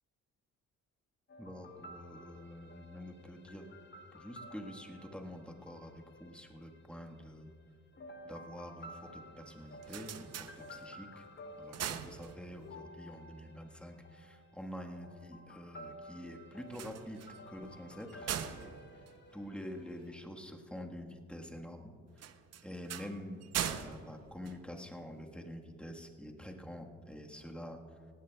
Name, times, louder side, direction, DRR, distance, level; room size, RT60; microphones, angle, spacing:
sound 1, 1.3-7.3 7.9-20.2, equal, 35° left, 1.0 m, -53 dB
voice 1, 1.4-3.7 4.1-7.5 8.2-11.2 11.6-17.2 17.5-18.8 19.3-21.9 22.6-27.8, equal, 5° left, 1 dB, 1.4 m, -47 dB
sound 2, 9.6-11.1 11.5-12.8 16.6-20.1 22.2-25.2, right 9 dB, 55° right, 0.7 m, -42 dB
18.0 x 16.0 x 2.3 m, 2.2 s
cardioid pair, 90°, 30 cm